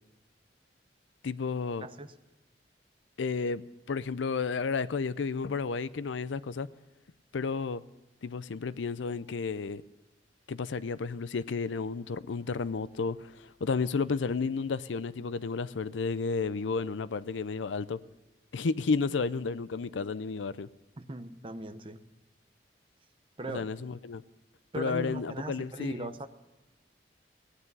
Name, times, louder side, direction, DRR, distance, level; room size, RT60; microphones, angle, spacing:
voice 1, 1.2-1.9 3.2-3.6 3.9-6.7 7.3-7.8 8.2-9.8 10.5-18.0 18.5-20.7 23.5-24.2 24.8-26.1, left 4 dB, 90° left, 16 dB, 0.5 m, -32 dB
voice 2, 1.8-2.1 21.0-22.0 23.4-23.7 24.7-26.3, right 2 dB, 30° right, 9 dB, 0.7 m, -39 dB
16.5 x 9.9 x 5.4 m, 1.1 s
head